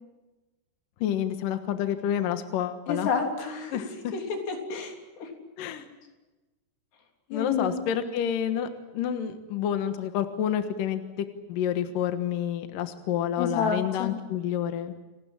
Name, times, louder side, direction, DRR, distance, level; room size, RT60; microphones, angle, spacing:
voice 1, 1.0-3.1 3.7-3.9 5.6-5.9 7.3-15.0, left 9 dB, 65° left, 8 dB, 2.8 m, -29 dB
voice 2, 2.9-3.8 4.1-5.3 7.3-7.8 13.4-14.1, left 5 dB, 85° left, 3 dB, 5.6 m, -30 dB
29.0 x 19.0 x 9.0 m, 1.1 s
omnidirectional pair, 4.7 m